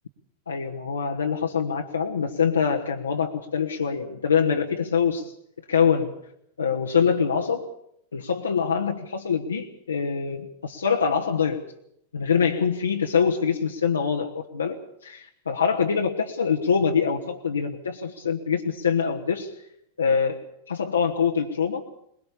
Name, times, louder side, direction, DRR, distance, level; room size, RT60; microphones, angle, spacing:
voice 1, 0.5-5.3 5.7-6.1 6.6-7.7 8.1-11.6 12.1-19.5 20.0-21.8, left 6 dB, 75° left, 1 dB, 1.3 m, -24 dB
22.0 x 21.0 x 7.0 m, 0.73 s
figure-of-eight pair, 90°, 0 cm